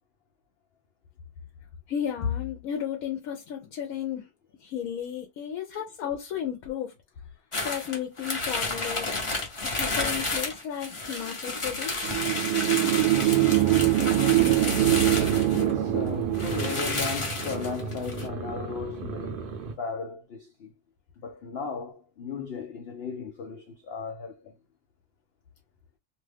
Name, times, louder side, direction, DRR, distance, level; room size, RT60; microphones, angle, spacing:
voice 1, 1.9-4.3 4.6-6.9 7.6-9.1 9.6-12.1, left 9 dB, 70° left, 1.0 m, -33 dB
sound 1, 7.5-15.7 16.1-16.2 16.3-18.3, left 2 dB, 35° left, 0.5 m, -31 dB
sound 2, 12.0-17.0, right 14 dB, 75° right, 1.0 m, -23 dB
sound 3, 14.4-19.7, right 4 dB, 50° right, 0.6 m, -36 dB
voice 2, 15.5-19.5 19.8-20.7 21.2-24.5, left 5 dB, 90° left, 0.5 m, -36 dB
2.8 x 2.3 x 3.2 m
omnidirectional pair, 1.7 m